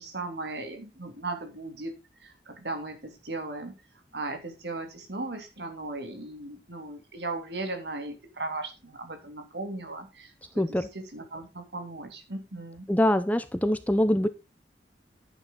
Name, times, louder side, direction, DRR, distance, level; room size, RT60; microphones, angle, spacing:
voice 1, 0.0-3.8 4.1-10.6 10.9-12.9, right 2 dB, 65° right, 5 dB, 3.0 m, -37 dB
voice 2, 10.6-10.9 12.9-14.3, left 1 dB, 10° left, 12 dB, 0.7 m, -24 dB
11.0 x 8.9 x 3.9 m, 0.27 s
head